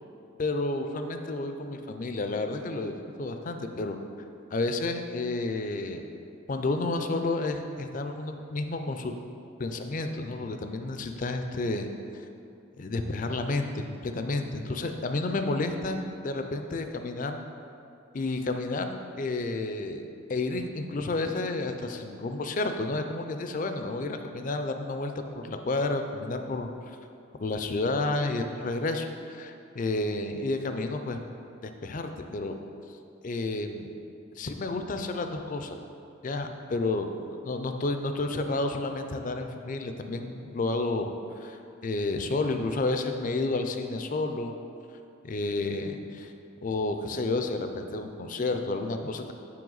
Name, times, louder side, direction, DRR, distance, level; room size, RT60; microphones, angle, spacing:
voice 1, 0.4-4.0 4.5-6.0 6.5-9.1 9.6-12.3 12.8-17.4 18.1-27.0 27.4-31.2 31.6-32.6 33.2-33.9 34.3-35.8 36.2-37.1 37.4-44.5 45.2-46.3 46.6-49.3, left 2 dB, 40° left, 6 dB, 0.4 m, -31 dB
7.5 x 5.7 x 3.9 m, 2.6 s
head